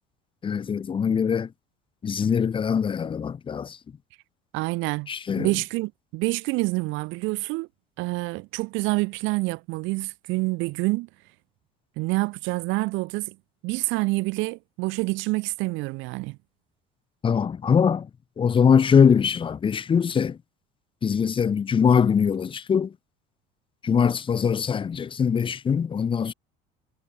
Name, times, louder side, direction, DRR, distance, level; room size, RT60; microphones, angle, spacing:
voice 1, 0.4-1.5 2.0-3.8 5.1-5.5 17.2-18.1 18.4-20.4 21.0-22.9 23.8-26.3, left 7 dB, 25° left, 0.7 m, -22 dB
voice 2, 4.5-5.1 5.4-7.7 8.0-11.1 12.0-13.3 13.6-16.4, right 24 dB, 70° right, 1.3 m, -27 dB
supercardioid pair, 105°, 21 cm